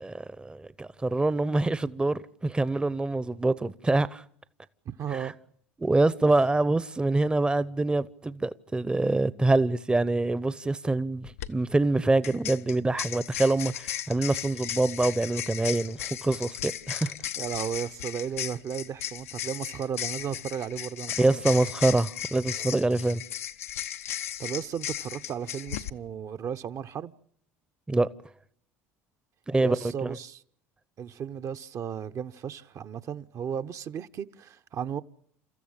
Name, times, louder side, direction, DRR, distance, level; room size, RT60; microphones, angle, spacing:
voice 1, 0.0-4.2 5.1-5.3 5.8-17.1 21.2-23.2 27.9-28.1 29.5-30.2, right 2 dB, 10° right, 0.9 m, -25 dB
voice 2, 4.9-5.4 17.4-21.4 24.1-27.1 29.6-30.4 31.0-35.0, right 8 dB, 45° right, 1.0 m, -35 dB
sound 1, 11.2-11.5 12.2-25.9, left 11 dB, 80° left, 0.9 m, -36 dB
30.0 x 14.5 x 8.9 m
hypercardioid pair, 70°, 8 cm